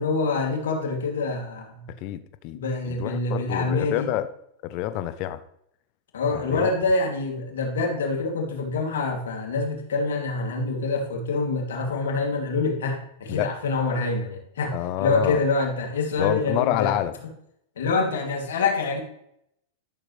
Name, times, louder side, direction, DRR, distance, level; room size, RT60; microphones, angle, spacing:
voice 1, 0.0-1.9 2.5-4.1 6.1-16.9 17.8-19.0, left 3 dB, 85° left, 1 dB, 2.7 m, -26 dB
voice 2, 1.9-2.6 2.8-4.3 4.6-5.4 6.3-6.7 13.3-13.5 14.7-15.4 16.2-17.2, left 13 dB, 50° left, 11 dB, 0.7 m, -27 dB
12.5 x 6.6 x 3.3 m, 0.74 s
hypercardioid pair, 120°, 0 cm